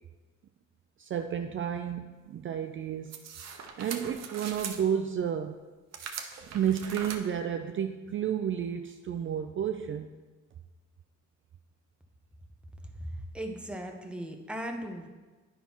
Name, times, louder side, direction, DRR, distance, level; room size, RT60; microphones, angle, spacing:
voice 1, 1.0-3.2 3.8-5.6 6.5-10.1, right 8 dB, 45° right, 6 dB, 0.4 m, -31 dB
sound 1, 3.1-4.8 5.9-7.2, right 6 dB, 60° right, 0.8 m, -40 dB
voice 2, 13.0-15.1, equal, 5° right, 3 dB, 0.8 m, -38 dB
9.3 x 5.6 x 3.0 m, 1.3 s
cardioid pair, 90°, 30 cm